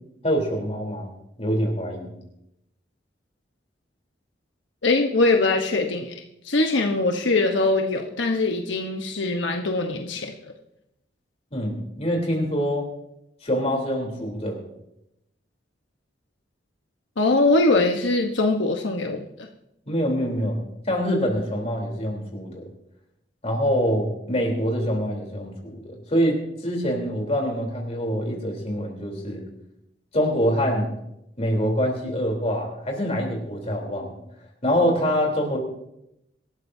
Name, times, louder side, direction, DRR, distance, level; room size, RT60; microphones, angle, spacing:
voice 1, 0.2-1.1 1.4-2.1 11.5-12.9 13.4-14.6 19.9-20.6 20.9-22.6 23.4-29.5 30.1-30.9 31.4-34.2 34.6-35.6, equal, 35° left, 0 dB, 3.6 m, -25 dB
voice 2, 4.8-10.3 17.2-19.2, left 2 dB, 85° left, 3 dB, 1.2 m, -22 dB
25.0 x 12.5 x 2.8 m, 0.83 s
head